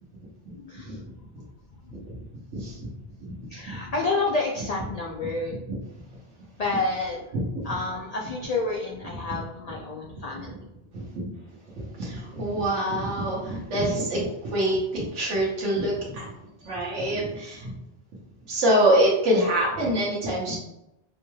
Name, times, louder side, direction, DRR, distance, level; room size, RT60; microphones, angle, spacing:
voice 1, 0.5-1.0 1.8-2.1 3.5-5.6 6.6-7.2 7.6-10.7 11.0-11.2 16.6-16.7, left 3 dB, 80° left, -1 dB, 0.3 m, -30 dB
voice 2, 10.9-11.3 11.8-16.3 16.6-17.7 18.5-20.6, right 1 dB, 80° right, -6 dB, 1.2 m, -25 dB
4.5 x 2.2 x 3.1 m, 0.90 s
omnidirectional pair, 1.2 m